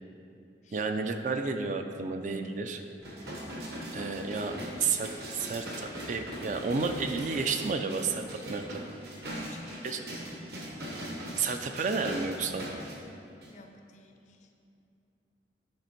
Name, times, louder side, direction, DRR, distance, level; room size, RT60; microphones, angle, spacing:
voice 1, 0.7-2.8 3.9-8.8 9.8-10.0 11.4-12.7, right 4 dB, 45° right, 6 dB, 0.4 m, -31 dB
sound 1, 3.0-12.9 13.4-13.5, equal, 60° right, 1.3 m, -40 dB
voice 2, 9.3-10.2 13.4-14.5, left 2 dB, 40° left, 5 dB, 0.5 m, -54 dB
9.6 x 4.1 x 4.4 m, 2.7 s
head